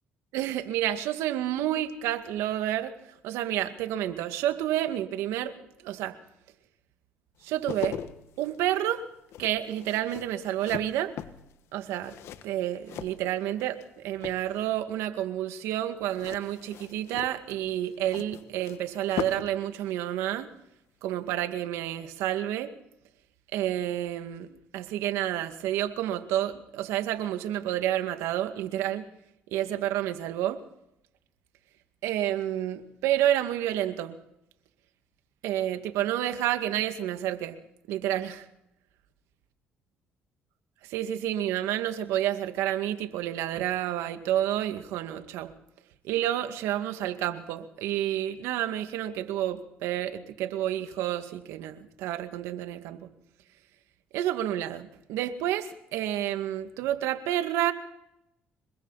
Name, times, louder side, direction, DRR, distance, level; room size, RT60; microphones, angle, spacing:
voice 1, 0.3-2.9 3.2-5.5 5.8-6.2 7.4-8.0 8.4-9.0 9.4-11.1 11.7-12.1 12.4-20.5 21.0-22.7 23.5-29.1 29.5-30.6 32.0-34.2 35.4-37.6 37.9-38.5 40.9-45.5 46.0-53.1 54.1-57.7, right 12 dB, 80° right, 8 dB, 2.1 m, -29 dB
sound 1, 7.4-13.9 14.1-14.8 16.1-19.6 19.9-20.0, left 10 dB, 70° left, 1.5 m, -40 dB
28.0 x 22.5 x 4.2 m, 0.83 s
supercardioid pair, 75°, 5 cm